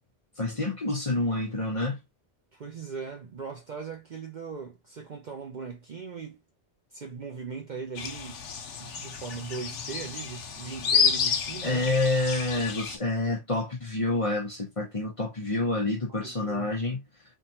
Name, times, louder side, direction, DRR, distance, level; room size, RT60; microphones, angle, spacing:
voice 1, 0.4-2.0 11.6-17.0, left 2 dB, 30° left, 0.8 m, -28 dB
voice 2, 2.5-6.4 6.9-8.4 8.8-11.9 16.1-16.7, right 5 dB, 50° right, 0.6 m, -39 dB
sound 1, 8.0-13.0, left 6 dB, 80° left, 1.0 m, -30 dB
3.6 x 2.3 x 2.7 m
omnidirectional pair, 1.2 m